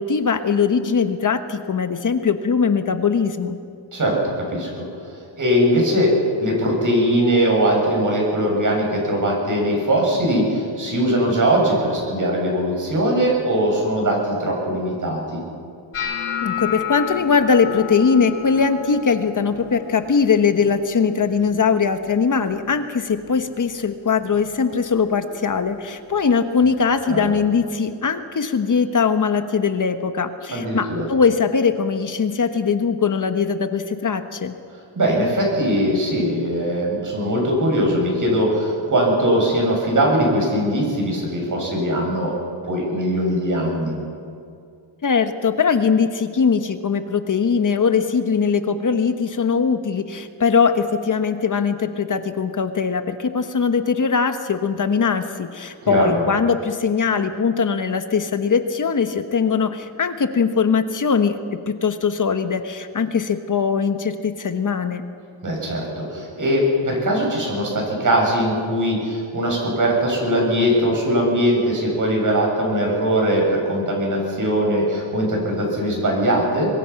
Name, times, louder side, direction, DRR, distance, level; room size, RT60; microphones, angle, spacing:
voice 1, 0.0-3.6 16.4-34.5 45.0-61.4 61.7-65.0, left 5 dB, 40° left, 8 dB, 1.3 m, -21 dB
voice 2, 3.9-4.8 5.4-6.1 6.4-15.4 27.0-27.3 30.5-31.1 35.0-42.3 42.7-43.9 55.8-56.2 65.4-76.7, equal, 40° right, -1 dB, 7.8 m, -20 dB
sound 1, 15.9-22.0 22.3-22.8 23.2-23.7 24.3-24.6 26.3-26.4, left 9 dB, 80° left, 5.7 m, -32 dB
24.5 x 21.5 x 5.9 m, 2.3 s
cardioid pair, 125°, 50 cm